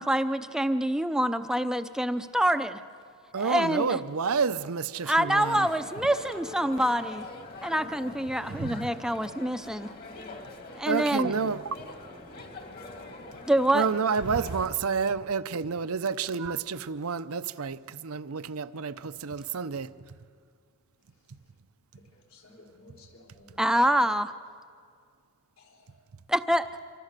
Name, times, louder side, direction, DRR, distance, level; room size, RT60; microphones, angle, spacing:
voice 1, 0.0-2.8 3.4-4.0 5.0-7.3 7.6-9.9 10.8-11.3 13.4-13.9 23.6-24.3 26.3-26.7, right 1 dB, 5° right, 0.6 m, -26 dB
voice 2, 3.3-5.7 8.4-8.9 10.9-11.6 13.7-19.9, right 5 dB, 70° right, 0.7 m, -29 dB
sound 1, 5.4-14.7, left 2 dB, 40° left, 2.3 m, -44 dB
voice 3, 22.1-23.6 25.6-25.8, left 2 dB, 65° left, 4.0 m, -55 dB
26.0 x 25.0 x 6.7 m
head